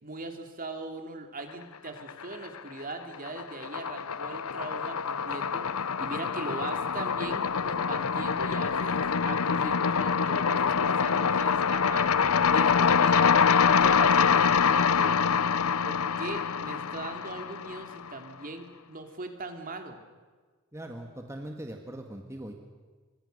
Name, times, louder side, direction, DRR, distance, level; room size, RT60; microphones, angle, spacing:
voice 1, 0.0-5.7 6.0-12.1 12.5-13.3 13.8-15.5 15.8-20.0, right 2 dB, 40° right, 5 dB, 2.9 m, -40 dB
sound 1, 1.9-2.6 2.9-18.1, left 6 dB, 85° left, 0.7 m, -25 dB
voice 2, 20.7-22.5, right 1 dB, 15° right, 3 dB, 1.9 m, -40 dB
28.0 x 24.5 x 6.8 m, 1.4 s
head